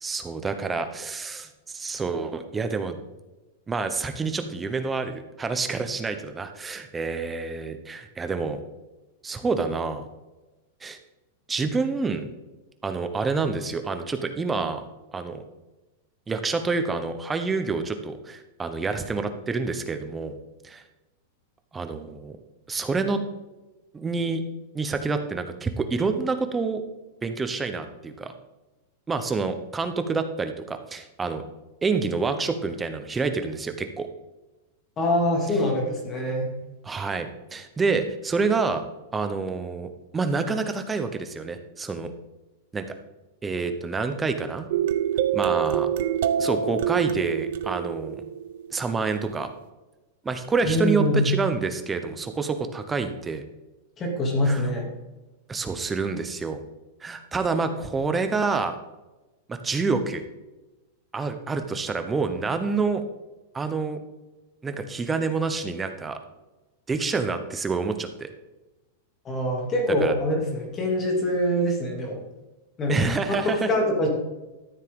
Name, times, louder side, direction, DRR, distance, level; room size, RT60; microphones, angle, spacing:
voice 1, 0.0-3.0 3.7-8.6 9.2-10.1 10.8-11.0 11.5-12.3 12.8-14.9 15.1-15.4 16.3-20.4 20.6-20.8 21.7-22.4 22.7-23.2 23.9-24.4 24.7-26.8 27.2-28.3 29.1-31.4 31.8-34.1 36.8-38.8 39.1-42.1 42.7-42.8 43.4-44.7 45.3-45.9 46.4-48.2 48.7-49.5 50.2-53.4 54.5-54.7 55.5-56.6 57.0-58.8 59.5-60.2 61.1-63.0 63.5-64.0 64.6-66.2 66.9-68.3 70.0-70.1 72.9-73.7, right 4 dB, 10° right, 8 dB, 0.8 m, -27 dB
voice 2, 35.0-36.5 50.6-51.3 54.0-54.9 69.2-72.2 72.8-73.0 73.3-74.1, left 1 dB, 20° left, 0 dB, 2.4 m, -24 dB
sound 1, 44.7-49.2, right 9 dB, 60° right, 0.7 m, -26 dB
13.0 x 7.3 x 3.7 m, 1.1 s
supercardioid pair, 170°, 0 cm